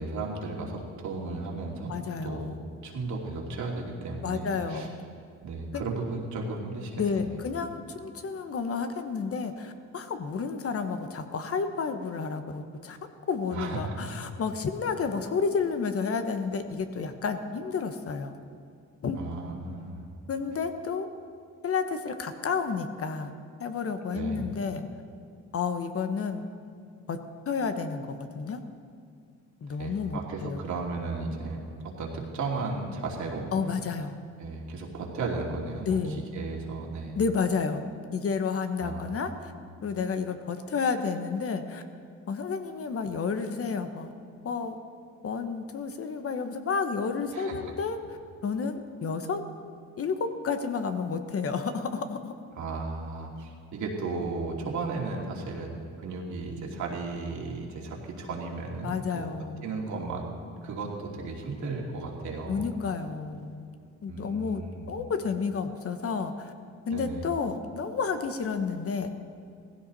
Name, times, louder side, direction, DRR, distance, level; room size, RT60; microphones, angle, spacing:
voice 1, 0.0-1.9 2.2-4.9 5.4-7.4 13.5-14.0 19.1-20.1 24.1-24.4 29.7-33.5 34.4-37.2 38.8-39.2 47.3-47.7 52.6-59.3 59.6-60.3 60.6-62.7 64.1-64.9 66.9-67.2, right 3 dB, 70° right, -1 dB, 2.8 m, -35 dB
voice 2, 1.9-2.5 4.2-5.0 5.7-5.9 7.0-13.0 13.3-18.3 19.0-19.2 20.3-21.1 21.6-23.3 23.6-24.8 25.5-26.5 27.1-27.2 27.5-28.6 29.6-30.6 33.5-34.1 35.9-36.2 37.1-39.5 39.8-41.8 42.3-44.8 45.2-48.0 48.4-49.4 50.0-52.3 58.8-59.6 62.5-63.8 64.0-66.5 66.9-69.1, left 5 dB, 50° left, 8 dB, 1.2 m, -31 dB
16.5 x 15.5 x 4.2 m, 2.3 s
cardioid pair, 90°, 30 cm